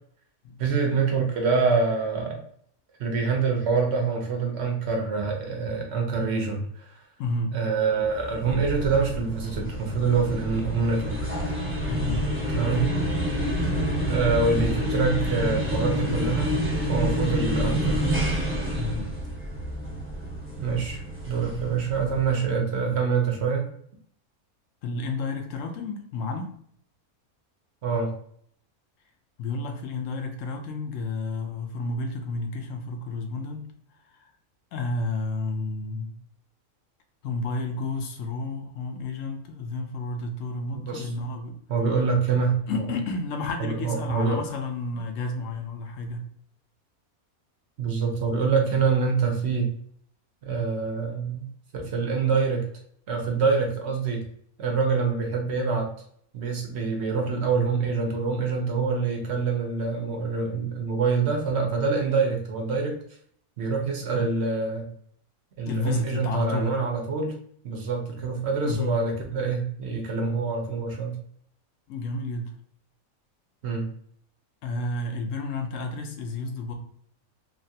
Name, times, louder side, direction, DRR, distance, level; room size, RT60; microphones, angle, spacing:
voice 1, 0.6-2.4 3.0-7.0 7.5-11.2 12.5-12.9 14.1-16.5 16.9-18.0 20.6-23.7 27.8-28.1 40.7-41.1 41.7-42.8 43.6-44.4 47.8-49.7 50.4-51.4 51.7-52.6 53.1-54.2 54.6-55.9 56.3-62.9 63.6-64.9 65.6-67.3 67.6-71.1 73.6-73.9, right 5 dB, 60° right, 1 dB, 0.8 m, -25 dB
voice 2, 7.2-7.5 11.9-12.3 18.8-19.1 24.8-26.5 29.4-33.7 34.7-36.2 37.2-41.6 42.7-46.2 65.7-66.7 68.6-69.0 71.9-72.5 74.6-76.7, left 3 dB, 70° left, 4 dB, 0.8 m, -31 dB
sound 1, 8.0-22.5, equal, 15° right, 0.5 m, -28 dB
3.1 x 2.4 x 2.7 m, 0.64 s
omnidirectional pair, 1.5 m